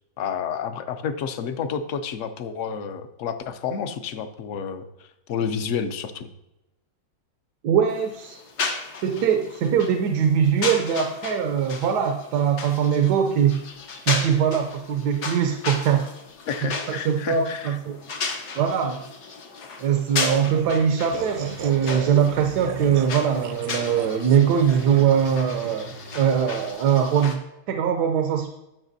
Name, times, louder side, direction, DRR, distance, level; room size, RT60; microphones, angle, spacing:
voice 1, 0.2-6.3 16.5-17.8, left 6 dB, 65° left, 9 dB, 0.9 m, -30 dB
voice 2, 7.6-8.4 9.0-13.6 14.0-16.1 16.6-18.0 18.6-19.0 19.8-28.5, right 8 dB, 85° right, 5 dB, 1.2 m, -22 dB
sound 1, 7.9-27.3, left 4 dB, 80° left, 1.6 m, -35 dB
sound 2, 20.2-25.3, right 7 dB, 60° right, 0.8 m, -35 dB
sound 3, 21.3-26.7, right 2 dB, 30° right, 0.4 m, -44 dB
12.0 x 6.5 x 2.7 m, 0.94 s
omnidirectional pair, 1.7 m